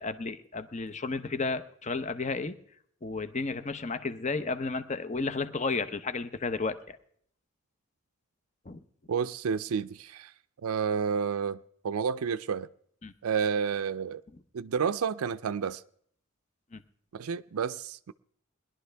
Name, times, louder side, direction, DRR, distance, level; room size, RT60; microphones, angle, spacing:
voice 1, 0.0-2.6 3.0-7.0 8.7-8.8 13.0-13.1 16.7-16.8, left 3 dB, 35° left, 0.7 m, -32 dB
voice 2, 9.1-10.3 10.6-11.6 11.8-12.7 13.2-14.2 14.5-15.8 17.1-18.1, right 6 dB, 90° right, 0.4 m, -30 dB
20.5 x 11.5 x 3.4 m
head